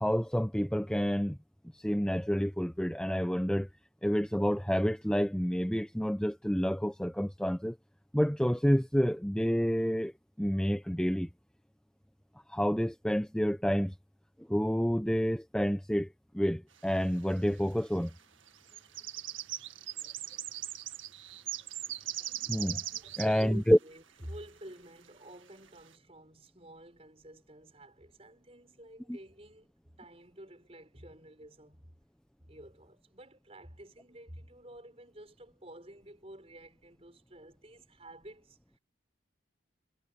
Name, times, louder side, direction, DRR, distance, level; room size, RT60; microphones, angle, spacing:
voice 1, 0.0-1.4 1.7-3.7 4.0-7.8 8.1-10.1 10.4-11.3 12.5-13.9 14.5-16.1 16.3-18.1 22.5-22.8 23.2-23.8, equal, 5° left, 0.9 m, -28 dB
sound 1, 17.0-17.1 18.0-18.2 18.5-23.5 23.7-23.8 24.2-24.3 25.1-25.2 25.7-25.9, right 12 dB, 90° right, 2.0 m, -39 dB
voice 2, 23.0-31.9 32.4-38.8, right 1 dB, 30° right, 6.6 m, -50 dB
head